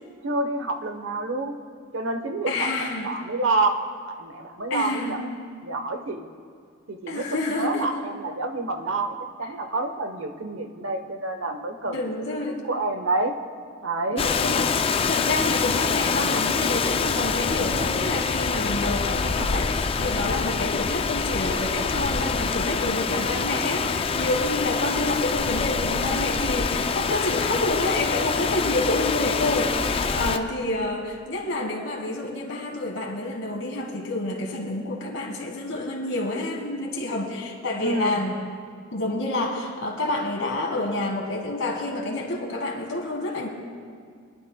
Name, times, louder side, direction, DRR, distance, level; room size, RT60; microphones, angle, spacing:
voice 1, 0.2-1.6 1.9-3.8 4.1-5.2 5.6-6.3 6.9-7.3 7.6-12.0 12.7-13.3 13.8-14.3 30.1-30.4 37.8-38.2, right 2 dB, 75° right, 6 dB, 0.9 m, -28 dB
voice 2, 2.5-3.1 4.7-5.2 7.1-7.9 11.9-12.6 14.1-38.5 38.9-43.5, left 2 dB, 75° left, -1 dB, 1.7 m, -28 dB
Rain, 14.2-30.4, left 5 dB, 25° left, 0.3 m, -25 dB
23.5 x 11.0 x 2.2 m, 2.2 s
head